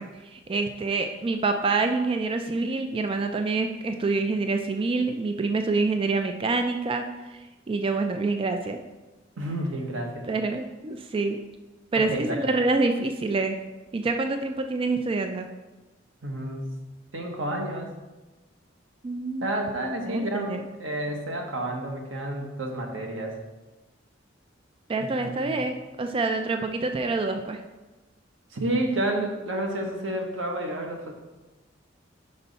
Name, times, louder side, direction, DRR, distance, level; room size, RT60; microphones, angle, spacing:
voice 1, 0.0-8.8 10.3-11.4 11.9-13.6 13.9-15.5 19.0-19.5 20.0-20.6 24.9-27.6, right 3 dB, 30° right, 6 dB, 0.3 m, -27 dB
voice 2, 9.4-10.3 11.9-12.5 16.2-16.6 17.1-17.9 19.4-23.4 25.0-25.6 28.5-31.1, right 1 dB, 85° right, 1 dB, 1.2 m, -30 dB
5.6 x 5.3 x 4.0 m, 1.1 s
head